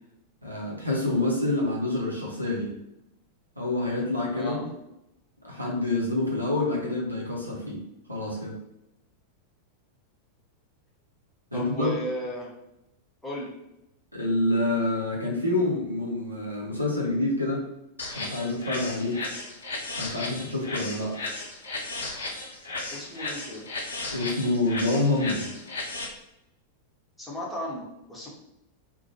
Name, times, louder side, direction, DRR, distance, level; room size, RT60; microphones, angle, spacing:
voice 1, 0.4-2.7 3.6-4.7 5.4-7.8 8.1-8.5 11.5-11.9 14.1-17.6 18.1-19.2 20.0-21.2 24.1-25.5, left 2 dB, 90° right, -3 dB, 0.6 m, -27 dB
voice 2, 11.5-12.5 13.2-13.5 22.9-23.6 27.2-28.3, equal, 5° left, -5 dB, 0.9 m, -35 dB
sound 1, 18.0-26.0, left 2 dB, 70° left, 0.5 m, -35 dB
2.5 x 2.1 x 2.7 m, 0.87 s
figure-of-eight pair, 90°, 0 cm